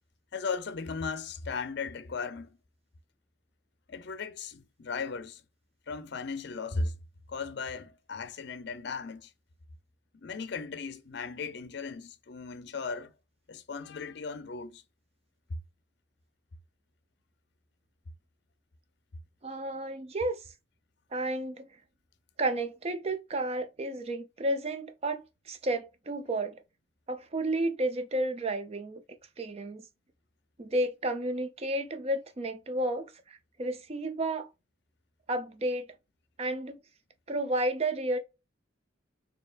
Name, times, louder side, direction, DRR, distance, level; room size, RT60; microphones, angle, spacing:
voice 1, 0.3-2.6 3.9-5.4 5.9-6.9 7.3-9.3 10.1-13.1 13.5-14.8, left 4 dB, 60° left, 0.5 m, -37 dB
voice 2, 19.4-20.4 21.1-21.7 22.4-26.6 27.1-29.0 29.4-29.9 30.6-34.5 35.3-35.9 36.4-36.8 37.3-38.2, right 1 dB, 35° right, 0.5 m, -32 dB
4.4 x 2.8 x 2.4 m
head